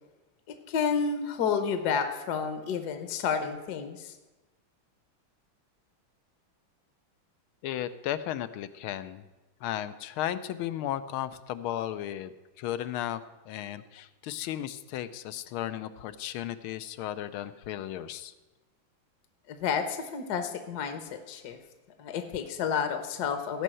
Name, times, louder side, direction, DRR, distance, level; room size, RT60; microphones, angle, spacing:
voice 1, 0.5-4.1 19.5-21.6 22.0-23.6, left 6 dB, 60° left, 8 dB, 1.3 m, -30 dB
voice 2, 7.6-9.3 9.6-18.3, left 12 dB, 90° left, 13 dB, 1.5 m, -35 dB
15.0 x 5.5 x 7.7 m, 1.1 s
omnidirectional pair, 2.2 m